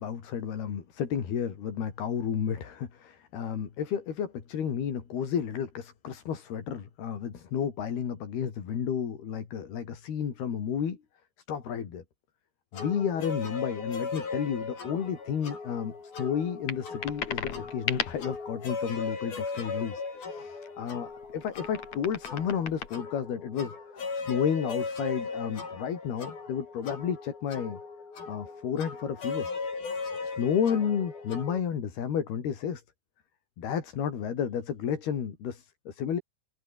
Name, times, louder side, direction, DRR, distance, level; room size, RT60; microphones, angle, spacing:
voice 1, 0.0-11.0 11.5-12.0 12.7-20.0 20.3-23.7 24.3-27.8 28.3-29.5 30.4-32.8 33.6-36.2, left 8 dB, 85° left, 5.3 m, -32 dB
sound 1, 12.7-31.6, left 4 dB, 70° left, 9.0 m, -38 dB
sound 2, 16.7-18.3 21.1-22.9, left 7 dB, 50° left, 3.5 m, -36 dB
omnidirectional pair, 4.4 m